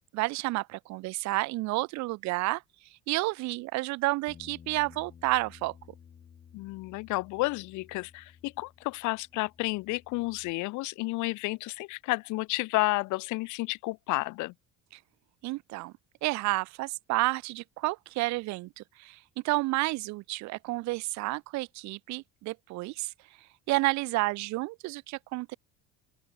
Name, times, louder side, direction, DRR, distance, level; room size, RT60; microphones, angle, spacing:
voice 1, 0.1-2.6 3.1-5.7 15.4-15.9 16.2-19.2 19.4-23.1 23.7-25.6, right 21 dB, 60° right, 0.5 m, -30 dB
Bass guitar, 4.3-10.5, left 7 dB, 25° left, 1.7 m, -55 dB
voice 2, 6.5-14.5, left 22 dB, 60° left, 0.6 m, -31 dB
open air
cardioid pair, 165°, 33 cm